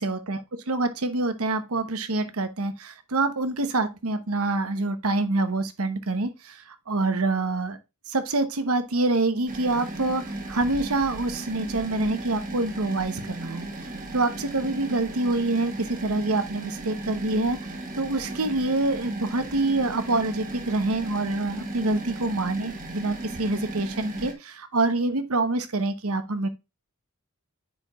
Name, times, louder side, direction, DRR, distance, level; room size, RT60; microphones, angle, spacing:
voice 1, 0.0-7.8 8.1-13.7 14.1-17.6 18.0-26.5, right 2 dB, 75° right, 1.0 m, -26 dB
sound 1, 9.5-24.3, right 2 dB, 40° right, 1.5 m, -36 dB
9.5 x 4.7 x 2.4 m
head